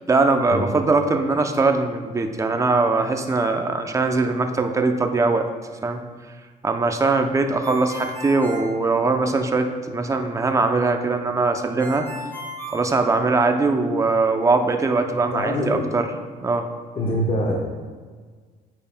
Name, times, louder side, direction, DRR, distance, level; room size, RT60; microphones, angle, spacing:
voice 1, 0.1-5.4 5.8-6.0 6.6-12.1 12.7-16.1 16.4-16.7, right 3 dB, 20° right, 5 dB, 0.5 m, -21 dB
Ringtone, 7.6-9.5 11.8-13.7, left 1 dB, 10° left, 1.8 m, -36 dB
voice 2, 15.3-15.8 16.9-17.5, equal, 30° left, -2 dB, 1.0 m, -24 dB
8.9 x 5.1 x 2.2 m, 1.5 s
cardioid pair, 110°, 17 cm